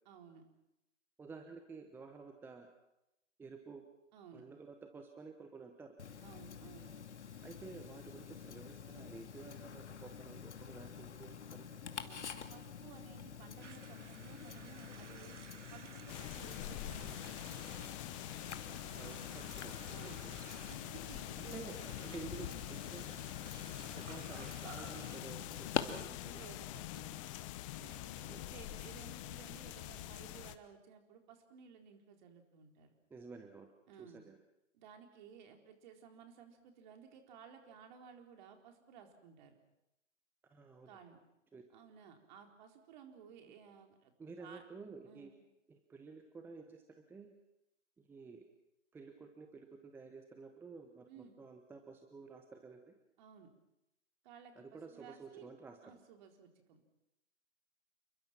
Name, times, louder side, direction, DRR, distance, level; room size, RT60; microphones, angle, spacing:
voice 1, 0.0-0.5 4.1-4.4 6.2-6.9 12.0-15.4 15.7-17.8 18.7-19.3 19.9-20.2 20.6-22.6 26.2-27.2 27.8-32.9 33.9-34.2 34.7-39.6 40.9-41.2 41.7-44.1 44.4-44.6 45.1-45.3 51.1-51.4 53.2-53.5 54.2-55.5 55.8-56.9, right 7 dB, 35° right, 4 dB, 4.1 m, -57 dB
voice 2, 1.2-2.7 3.4-3.8 4.3-6.0 7.4-11.7 19.0-19.8 20.0-20.4 21.4-21.8 22.1-23.1 23.8-26.4 28.3-28.4 33.1-33.7 34.0-34.4 40.5-40.9 41.5-41.7 44.2-45.3 45.7-47.3 48.0-48.4 48.9-52.9 54.6-55.8, right 4 dB, 5° right, 6 dB, 1.1 m, -52 dB
Tick-tock, 6.0-25.8, left 7 dB, 65° left, 2.4 m, -47 dB
sound 1, 13.6-25.2, right 6 dB, 70° right, 2.1 m, -56 dB
sound 2, 16.1-30.6, left 14 dB, 25° left, 1.1 m, -45 dB
29.0 x 22.0 x 6.0 m, 0.88 s
figure-of-eight pair, 135°, 38 cm